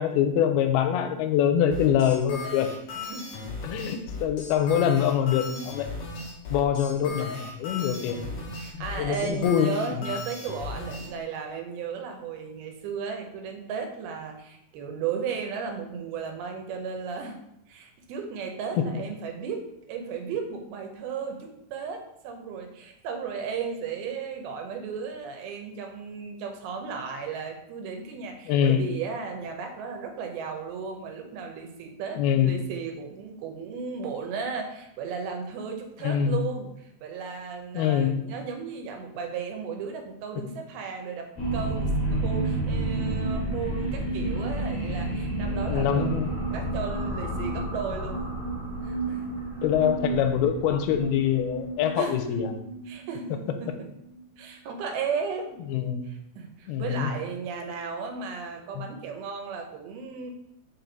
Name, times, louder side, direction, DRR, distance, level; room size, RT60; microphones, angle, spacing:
voice 1, 0.0-2.7 3.6-5.9 6.5-8.2 8.7-10.1 28.5-28.8 32.2-32.7 36.0-36.4 37.7-38.2 45.7-46.3 49.6-52.6 55.7-56.1 56.7-57.1 58.8-58.9, left 9 dB, 90° left, 8 dB, 2.6 m, -24 dB
sound 1, 1.7-11.1, left 3 dB, 55° left, 2.3 m, -37 dB
voice 2, 3.0-3.6 7.7-17.4 17.7-36.7 37.0-48.3 48.8-49.3 52.0-52.4 52.9-53.9 54.4-55.7 56.0-60.4, right 6 dB, 85° right, 4 dB, 2.7 m, -35 dB
sound 2, 41.3-54.2, right 2 dB, 30° left, 1.8 m, -30 dB
5.9 x 4.9 x 3.9 m, 0.80 s
omnidirectional pair, 4.3 m